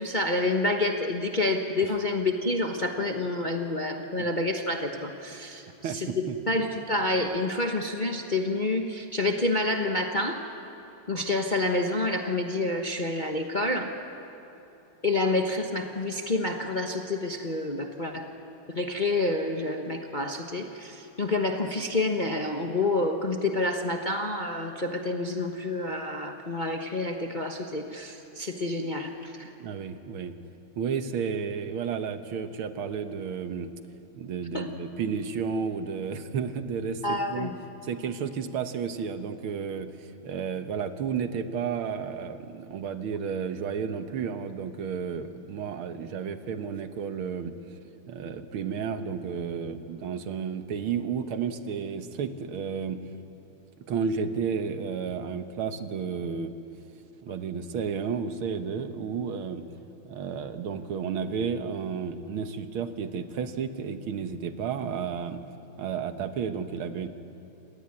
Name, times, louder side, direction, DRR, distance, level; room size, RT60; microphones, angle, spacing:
voice 1, 0.0-5.6 6.5-10.4 11.1-13.9 15.0-18.3 18.7-29.5 34.5-34.7 37.0-37.5, left 2 dB, 30° left, 3 dB, 1.0 m, -28 dB
voice 2, 5.8-6.6 29.6-30.4 30.8-33.7 34.2-37.5 37.8-47.5 48.1-53.0 53.8-56.5 57.2-59.6 60.0-65.4 65.8-67.1, right 6 dB, 70° right, 8 dB, 2.0 m, -32 dB
27.5 x 17.5 x 9.8 m, 3.0 s
omnidirectional pair, 2.4 m